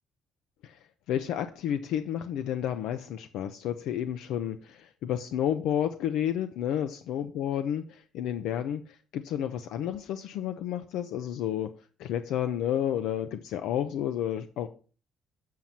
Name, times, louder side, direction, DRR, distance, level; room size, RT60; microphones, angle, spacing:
voice 1, 1.1-11.7 12.0-14.7, left 10 dB, 80° left, 9 dB, 0.6 m, -31 dB
7.5 x 7.5 x 4.1 m, 0.37 s
cardioid pair, 130°, 0 cm